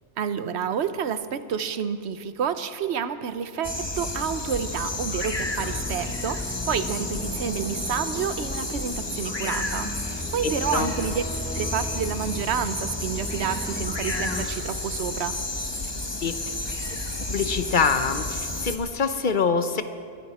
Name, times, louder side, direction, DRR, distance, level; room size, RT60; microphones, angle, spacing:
voice 1, 0.2-11.2 11.5-15.4, right 7 dB, 85° right, 12 dB, 1.0 m, -29 dB
sound 1, 3.6-18.8, left 2 dB, 25° left, 1.1 m, -31 dB
sound 2, 5.6-14.5, equal, 5° left, 0.8 m, -36 dB
voice 2, 10.4-10.9 16.2-16.3 17.2-19.8, left 5 dB, 50° left, 10 dB, 0.9 m, -25 dB
23.0 x 15.0 x 4.2 m, 2.2 s
omnidirectional pair, 1.1 m